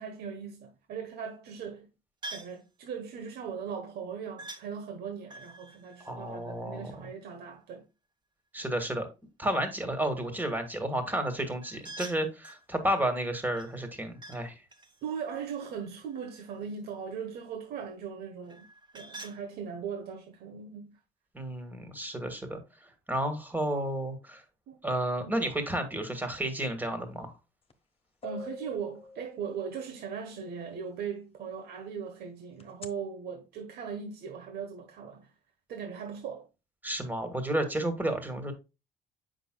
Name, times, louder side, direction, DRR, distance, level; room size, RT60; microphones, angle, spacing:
voice 1, 0.0-1.9 2.3-7.8 15.0-18.7 18.9-21.0 24.7-24.8 25.2-25.3 28.2-35.3 35.7-36.5, right 6 dB, 70° right, 1.3 m, -39 dB
sound 1, 2.2-2.6 4.4-4.7 5.3-7.1 11.6-12.7 13.5-14.4 14.7-16.6 18.5-19.4, right 2 dB, 25° right, 1.5 m, -46 dB
voice 2, 6.0-6.9 8.5-9.1 9.4-14.5 21.3-22.6 23.1-24.4 24.8-27.3 36.8-38.5, right 1 dB, 10° right, 1.9 m, -31 dB
sound 2, 27.7-27.8 28.2-30.0 32.6-32.9, left 3 dB, 35° left, 1.2 m, -45 dB
7.7 x 6.2 x 2.3 m
cardioid pair, 110°, 17 cm